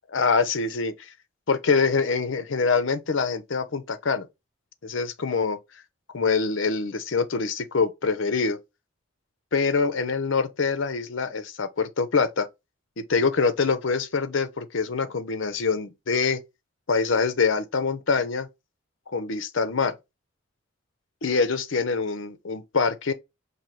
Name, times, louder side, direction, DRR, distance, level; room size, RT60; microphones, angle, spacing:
voice 1, 0.1-0.9 1.5-4.3 4.8-5.6 6.1-8.6 9.5-12.5 13.1-16.4 16.9-18.5 19.1-19.9 21.2-23.1, left 4 dB, 65° left, 0.6 m, -24 dB
5.6 x 2.7 x 3.1 m
head